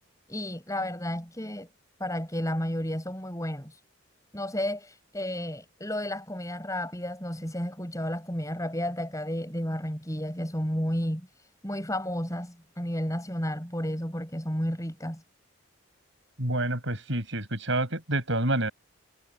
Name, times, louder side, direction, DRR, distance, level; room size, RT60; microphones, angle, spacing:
voice 1, 0.3-1.7 2.0-3.8 4.3-15.2, equal, 15° left, 7.9 m, -32 dB
voice 2, 16.4-18.7, right 1 dB, 60° right, 6.6 m, -28 dB
head